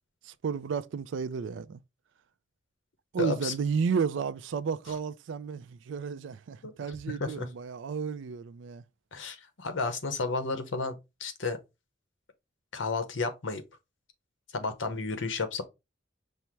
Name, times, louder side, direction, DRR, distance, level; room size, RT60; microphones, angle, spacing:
voice 1, 0.2-1.8 3.1-8.8, right 6 dB, 75° right, 0.4 m, -32 dB
voice 2, 3.2-3.5 6.6-6.7 7.1-7.5 9.1-11.6 12.7-13.6 14.5-15.6, left 3 dB, 80° left, 0.9 m, -32 dB
5.6 x 2.1 x 4.5 m
head